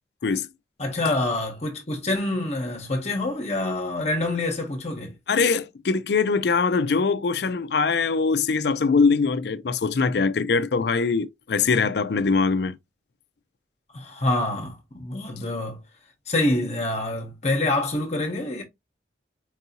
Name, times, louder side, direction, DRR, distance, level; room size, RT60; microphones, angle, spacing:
voice 1, 0.8-5.1 13.9-15.8 16.3-18.6, left 2 dB, 35° left, 0.9 m, -26 dB
voice 2, 5.3-12.7, left 4 dB, 60° left, 0.4 m, -22 dB
4.6 x 2.7 x 2.7 m
head